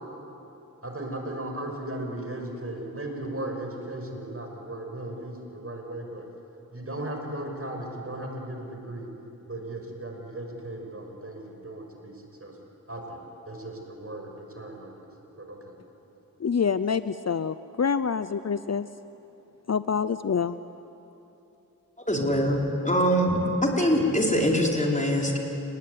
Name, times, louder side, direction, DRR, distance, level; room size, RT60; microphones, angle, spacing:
voice 1, 0.8-6.3 6.7-9.1 9.5-12.1 12.4-12.5 12.9-15.1 15.4-15.6, right 1 dB, 40° right, 3 dB, 5.9 m, -36 dB
voice 2, 16.4-18.9 19.7-20.6, left 6 dB, 50° left, 13 dB, 0.7 m, -26 dB
voice 3, 22.1-25.4, equal, 20° left, 0 dB, 4.7 m, -23 dB
29.5 x 20.0 x 9.6 m, 2.9 s
cardioid pair, 55°, 34 cm